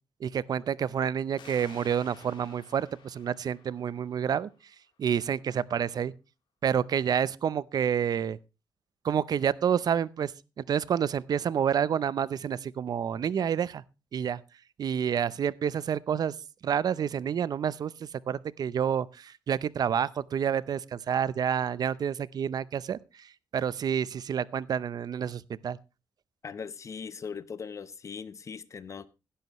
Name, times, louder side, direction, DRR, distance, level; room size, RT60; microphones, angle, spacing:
voice 1, 0.2-4.5 5.0-6.1 6.6-8.4 9.0-10.3 10.6-13.8 14.1-14.4 14.8-16.3 16.6-17.9 18.3-23.0 23.5-25.8, right 8 dB, 55° right, 0.6 m, -28 dB
sound 1, 1.4-4.7, left 7 dB, 80° left, 3.4 m, -53 dB
voice 2, 26.4-29.1, left 6 dB, 40° left, 0.9 m, -40 dB
16.5 x 11.5 x 3.1 m
wide cardioid pair, 165°, 8 cm